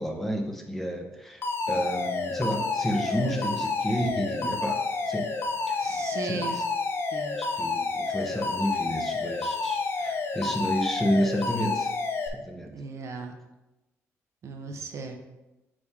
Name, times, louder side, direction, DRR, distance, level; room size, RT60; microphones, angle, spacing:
voice 1, 0.0-4.8 5.1-5.3 5.7-5.8 6.2-6.4 7.3-11.9 12.3-12.7, equal, 5° left, 2 dB, 0.9 m, -30 dB
Alarm, 1.4-12.3, left 4 dB, 45° left, 0.8 m, -29 dB
voice 2, 5.8-6.6 7.1-7.4 12.7-13.3 14.4-15.2, right 4 dB, 60° right, 5 dB, 0.7 m, -36 dB
8.6 x 3.4 x 3.6 m, 1.0 s
cardioid pair, 110°, 6 cm